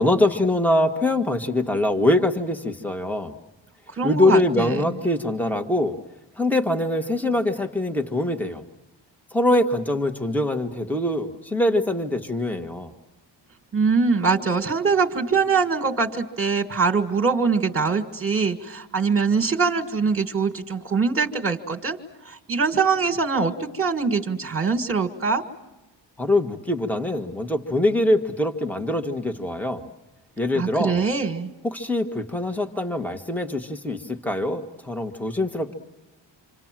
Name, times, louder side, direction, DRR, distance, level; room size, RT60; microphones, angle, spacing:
voice 1, 0.0-3.3 4.0-5.9 6.4-8.6 9.3-12.9 26.2-29.9 30.4-31.0 31.6-35.7, left 1 dB, 5° left, 6 dB, 1.6 m, -23 dB
voice 2, 4.0-4.8 13.7-22.0 22.2-25.4 30.5-31.5, right 5 dB, 30° right, 4 dB, 1.9 m, -23 dB
27.5 x 27.0 x 7.5 m, 1.0 s
wide cardioid pair, 145°, 44 cm